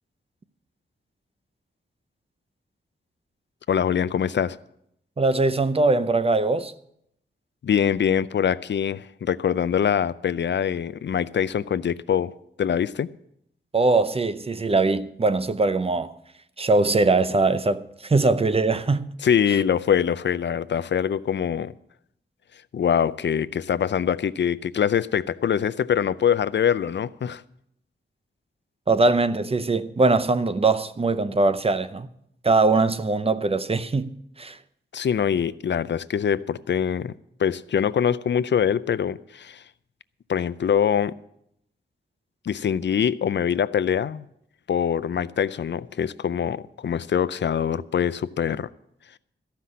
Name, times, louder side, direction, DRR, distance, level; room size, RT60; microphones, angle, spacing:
voice 1, 3.7-4.6 7.6-13.1 19.2-21.7 22.7-27.4 34.9-37.1 37.4-39.6 40.3-41.2 42.4-44.3 44.7-48.7, left 8 dB, 60° left, 0.5 m, -24 dB
voice 2, 5.2-6.7 13.7-16.1 16.6-19.1 28.9-32.1 32.4-34.1 34.4-34.6, right 3 dB, 30° right, 0.6 m, -21 dB
14.0 x 5.8 x 9.5 m
wide cardioid pair, 115°, 21 cm